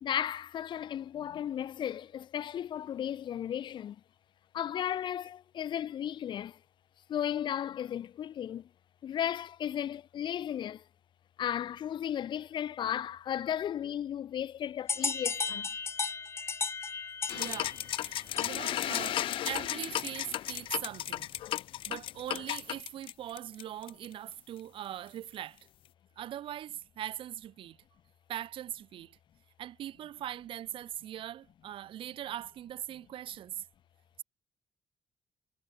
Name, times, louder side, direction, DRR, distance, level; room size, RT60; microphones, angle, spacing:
voice 1, 0.0-4.0 4.5-6.6 7.1-8.7 9.0-10.8 11.4-15.7, left 10 dB, 65° left, 1.1 m, -35 dB
sound 1, 14.9-19.4, left 5 dB, 30° left, 1.1 m, -35 dB
sound 2, 17.3-24.1, left 13 dB, 85° left, 0.4 m, -34 dB
voice 2, 17.3-21.3 21.8-25.7 26.2-27.8 28.3-29.2 29.6-33.6, right 11 dB, 85° right, 1.5 m, -41 dB
wide cardioid pair, 155°, 9 cm